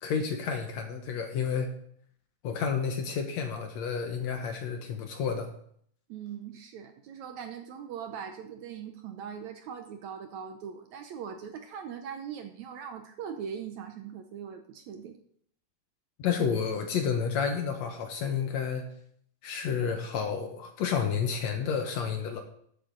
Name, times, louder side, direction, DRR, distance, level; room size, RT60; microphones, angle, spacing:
voice 1, 0.0-1.8 2.4-5.5 16.2-18.9 19.4-22.4, left 6 dB, 65° left, 5 dB, 2.0 m, -30 dB
voice 2, 6.1-15.2, right 7 dB, 75° right, 6 dB, 1.8 m, -41 dB
12.5 x 8.5 x 3.9 m, 0.66 s
omnidirectional pair, 3.8 m